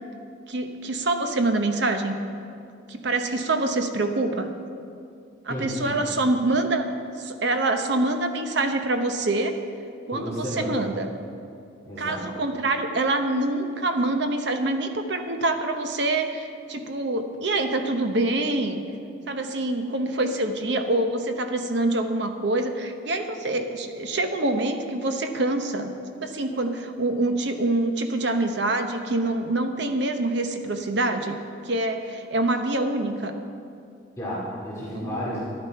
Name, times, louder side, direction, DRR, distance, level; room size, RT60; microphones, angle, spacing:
voice 1, 0.5-2.2 2.9-4.5 5.4-6.9 7.2-9.6 10.1-11.1 12.0-18.8 19.3-25.9 26.2-31.4 31.7-33.3 34.9-35.2, right 2 dB, 60° right, 6 dB, 0.8 m, -25 dB
voice 2, 5.5-6.0 10.1-10.9 11.8-12.2 34.2-35.4, equal, 15° left, -8 dB, 2.2 m, -31 dB
11.5 x 11.5 x 4.6 m, 2.4 s
head